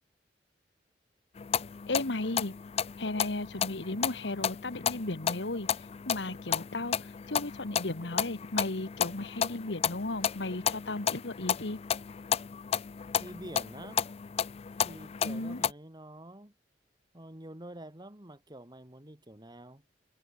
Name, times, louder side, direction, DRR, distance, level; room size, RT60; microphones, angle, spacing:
sound 1, 1.4-15.7, left 8 dB, 35° left, 0.4 m, -33 dB
voice 1, 1.9-2.5 3.0-5.7 6.0-11.8 15.2-15.6, left 2 dB, 80° left, 1.6 m, -35 dB
voice 2, 13.2-14.0 14.8-16.5 17.1-19.8, right 1 dB, 25° right, 2.6 m, -47 dB
head